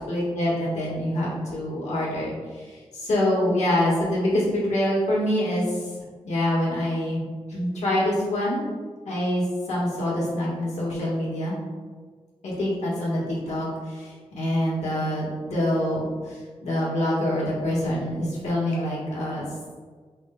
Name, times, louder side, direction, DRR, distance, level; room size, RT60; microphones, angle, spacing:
voice 1, 0.1-5.9 6.2-7.2 7.5-8.6 9.1-11.5 12.4-19.5, left 1 dB, 85° left, -5 dB, 1.5 m, -25 dB
4.9 x 2.2 x 3.6 m, 1.5 s
wide cardioid pair, 100°, 11 cm